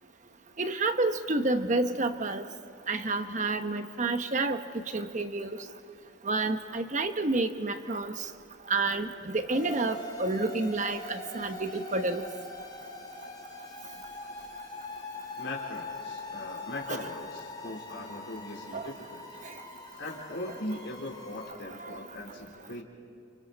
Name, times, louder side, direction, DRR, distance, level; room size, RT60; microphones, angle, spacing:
voice 1, 0.6-2.5 2.9-4.6 4.9-5.6 6.2-8.3 8.7-12.2 16.9-17.0 18.7-18.9 19.4-19.5 21.8-22.0, right 2 dB, 40° right, 8 dB, 1.1 m, -29 dB
sound 1, 9.5-21.5, left 2 dB, 20° left, 3.1 m, -43 dB
voice 2, 15.4-19.2 20.0-22.8, left 1 dB, 70° left, -4 dB, 3.8 m, -40 dB
29.5 x 29.5 x 4.2 m, 2.8 s
head